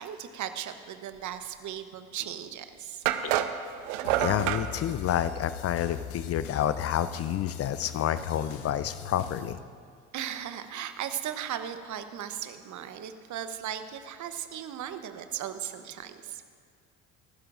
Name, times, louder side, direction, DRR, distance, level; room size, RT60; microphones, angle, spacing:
voice 1, 0.0-3.0 10.1-16.4, right 10 dB, 45° right, 10 dB, 1.0 m, -37 dB
sound 1, 2.2-2.3 3.1-4.7, right 12 dB, 65° right, 0.8 m, -27 dB
sound 2, 4.0-9.5, left 9 dB, 70° left, 1.1 m, -41 dB
voice 2, 4.2-9.6, left 10 dB, 40° left, 13 dB, 0.5 m, -29 dB
24.0 x 12.5 x 2.5 m, 2.1 s
hypercardioid pair, 60°, 40 cm